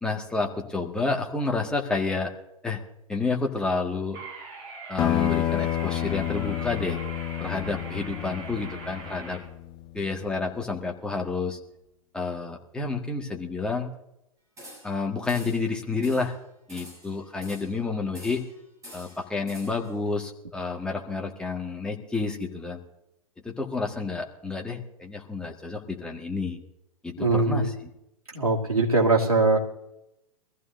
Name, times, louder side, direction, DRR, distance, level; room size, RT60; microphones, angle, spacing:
voice 1, 0.0-2.3 2.6-2.8 3.1-4.2 4.9-7.0 7.4-9.4 9.9-11.6 12.1-13.9 14.8-16.4 16.7-18.4 18.9-22.8 23.4-26.6 27.0-27.7, left 3 dB, 5° left, 0 dB, 1.8 m, -29 dB
sound 1, 4.1-9.4, right 4 dB, 40° right, 7.2 m, -41 dB
sound 2, 5.0-10.1, left 12 dB, 20° left, 0.7 m, -29 dB
sound 3, 14.6-15.0 15.3-15.7 16.0-16.3 16.7-17.8 18.1-18.5 18.8-19.9, equal, 15° right, 7.5 m, -46 dB
voice 2, 27.2-27.7 28.3-29.6, right 3 dB, 85° right, -2 dB, 2.8 m, -21 dB
23.5 x 15.0 x 2.7 m, 0.86 s
figure-of-eight pair, 110°, 19 cm